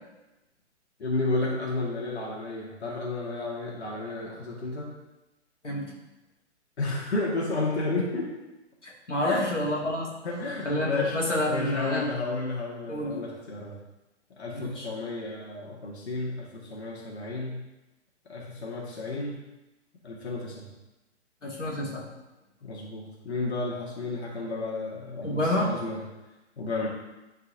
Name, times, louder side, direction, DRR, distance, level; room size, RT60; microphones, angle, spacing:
voice 1, 1.0-4.9 6.8-8.3 9.2-9.4 10.2-11.2 11.5-13.8 14.4-17.6 18.3-19.4 20.0-20.7 22.6-26.0 26.6-26.9, left 2 dB, 65° left, -3 dB, 1.7 m, -32 dB
voice 2, 8.8-10.1 10.6-12.1 12.9-13.2 14.5-14.9 21.4-22.1 25.2-25.7, left 1 dB, 90° left, -4 dB, 2.0 m, -28 dB
10.0 x 4.5 x 2.7 m, 1.0 s
figure-of-eight pair, 130°, 35 cm